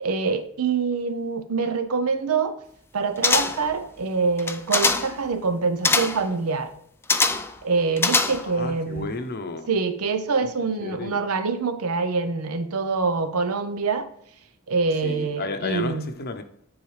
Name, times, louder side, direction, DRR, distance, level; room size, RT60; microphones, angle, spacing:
voice 1, 0.0-2.6 2.9-6.7 7.6-9.1 9.7-14.1 14.7-16.1, right 4 dB, 80° right, 0.7 m, -25 dB
sound 1, 3.2-3.7 4.4-5.2 5.8-6.3 7.1-7.6 8.0-8.6 9.0-9.1, left 3 dB, 10° left, 0.3 m, -22 dB
voice 2, 8.4-9.7 10.8-11.2 15.0-16.4, left 3 dB, 45° left, 0.7 m, -32 dB
9.7 x 4.0 x 3.2 m
head